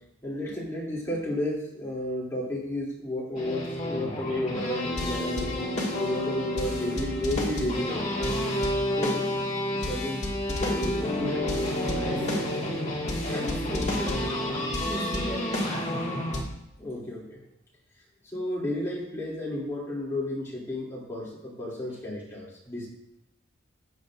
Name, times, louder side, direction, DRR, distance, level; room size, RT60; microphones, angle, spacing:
voice 1, 0.2-5.5 6.0-8.1 9.0-9.3 9.7-12.8 13.2-13.5 16.8-17.4 18.3-22.9, left 1 dB, 15° left, -7 dB, 2.8 m, -33 dB
sound 1, 3.4-16.4, left 1 dB, 35° left, 2.0 m, -29 dB
voice 2, 12.0-12.3 13.4-14.4 14.8-16.0, equal, 10° right, -5 dB, 2.1 m, -36 dB
13.5 x 8.5 x 2.6 m, 0.81 s
head